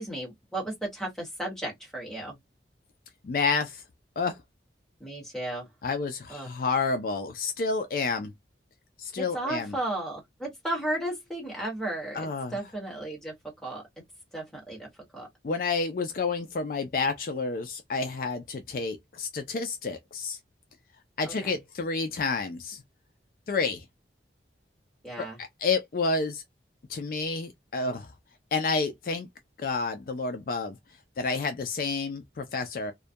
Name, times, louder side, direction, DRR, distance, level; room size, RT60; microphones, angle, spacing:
voice 1, 0.0-2.4 5.0-5.7 6.3-6.5 9.2-13.8 14.3-15.3 21.2-21.5 25.0-25.4, right 1 dB, 5° left, 1.1 m, -34 dB
voice 2, 3.2-3.8 4.2-4.4 5.8-8.3 9.0-9.7 12.1-12.5 15.4-20.4 21.2-22.8 23.5-23.8 25.2-26.4 26.9-28.1 28.5-29.3 29.6-30.8 31.2-32.9, left 4 dB, 50° left, 0.3 m, -29 dB
2.3 x 2.1 x 2.5 m
head